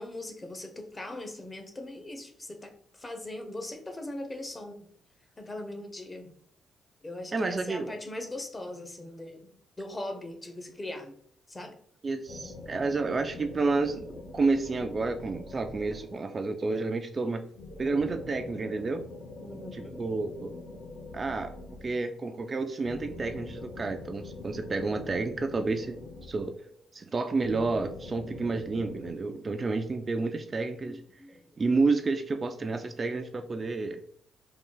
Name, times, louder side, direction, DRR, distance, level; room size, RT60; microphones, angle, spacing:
voice 1, 0.0-4.9 5.4-6.4 7.0-11.2 11.5-11.8 19.4-20.0 30.8-31.6, left 1 dB, 20° left, 5 dB, 0.8 m, -40 dB
voice 2, 7.3-7.9 12.0-17.5 17.8-19.1 19.7-20.5 21.1-21.5 21.8-26.5 26.9-31.0 31.6-34.0, right 3 dB, 35° right, 6 dB, 0.3 m, -30 dB
sound 1, 12.3-16.4 17.5-22.2 22.8-26.8 27.4-29.1, left 2 dB, 60° left, 0.9 m, -44 dB
3.8 x 2.2 x 3.8 m, 0.62 s
cardioid pair, 90°, 0 cm